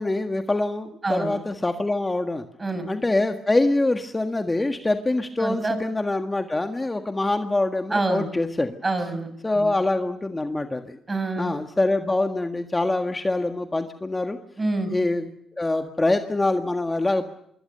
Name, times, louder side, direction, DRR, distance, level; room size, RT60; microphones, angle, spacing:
voice 1, 0.0-2.4 2.9-8.8 9.4-11.0 11.4-14.4 14.9-15.3 15.6-17.2, left 2 dB, 15° left, 5 dB, 1.7 m, -24 dB
voice 2, 1.0-1.3 2.6-2.9 5.4-5.8 7.9-8.3 8.8-9.3 9.5-9.7 11.1-11.5 14.6-14.9, right 2 dB, 25° right, 10 dB, 6.5 m, -26 dB
26.0 x 23.0 x 6.8 m, 0.76 s
cardioid pair, 90°, 0 cm